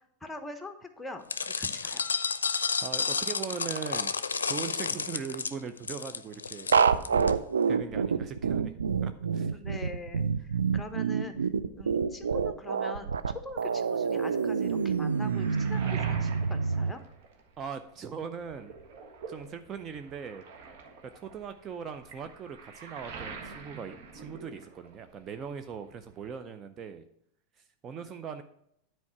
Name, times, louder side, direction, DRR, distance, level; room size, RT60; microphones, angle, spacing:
voice 1, 0.2-2.1 9.5-11.5 11.7-17.0, left 2 dB, 5° left, 7 dB, 1.1 m, -43 dB
sound 1, 1.3-7.3, left 5 dB, 85° left, 0.4 m, -31 dB
voice 2, 2.8-4.1 4.4-8.7 9.0-9.5 17.6-18.7 19.3-20.4 21.1-27.0 27.8-28.4, right 6 dB, 35° right, 8 dB, 0.6 m, -40 dB
sound 2, 6.7-16.9, right 6 dB, 85° right, 0.4 m, -27 dB
Waves surf, 14.6-17.8 18.2-25.1 25.3-26.3, right 4 dB, 60° right, 1.5 m, -45 dB
9.6 x 4.5 x 5.9 m, 0.73 s
hypercardioid pair, 90°, 0 cm